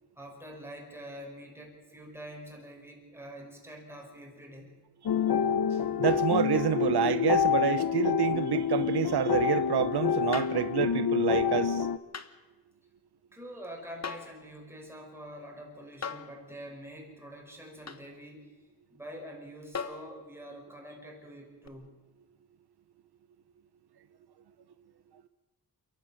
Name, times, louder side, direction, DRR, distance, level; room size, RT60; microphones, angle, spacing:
voice 1, 0.2-4.8 13.3-18.5 18.9-21.9, equal, 5° right, 5.6 m, -46 dB
sound 1, 5.1-12.0, left 7 dB, 65° left, 0.9 m, -27 dB
voice 2, 6.0-11.9, right 9 dB, 85° right, 0.9 m, -28 dB
sound 2, 10.3-10.7 12.1-12.3 14.0-14.4 16.0-16.4 17.9-18.1 19.7-20.1 21.6-21.7, left 6 dB, 45° left, 1.3 m, -38 dB
28.5 x 11.5 x 8.8 m
wide cardioid pair, 95°, 38 cm